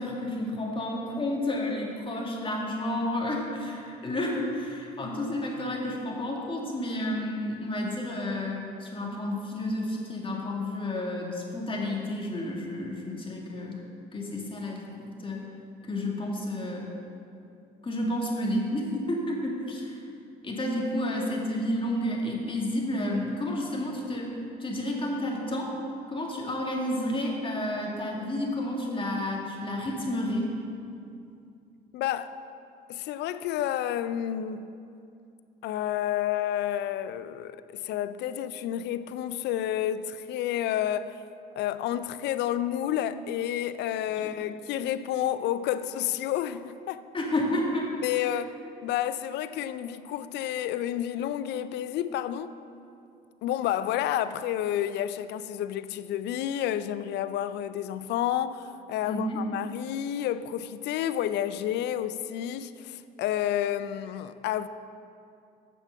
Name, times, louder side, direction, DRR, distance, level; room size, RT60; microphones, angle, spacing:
voice 1, 0.0-13.8 14.1-15.5 15.8-16.9 17.8-20.0 20.4-24.3 24.6-25.7 26.1-30.5 44.2-44.3 47.1-47.9 59.0-59.4, left 1 dB, 30° left, 2.1 m, -31 dB
voice 2, 31.9-32.3 32.9-34.7 35.6-41.2 41.6-47.0 48.0-48.5 48.8-52.6 53.4-58.6 58.9-64.7, left 11 dB, 65° left, 0.4 m, -30 dB
8.5 x 6.8 x 5.7 m
supercardioid pair, 65°, 19 cm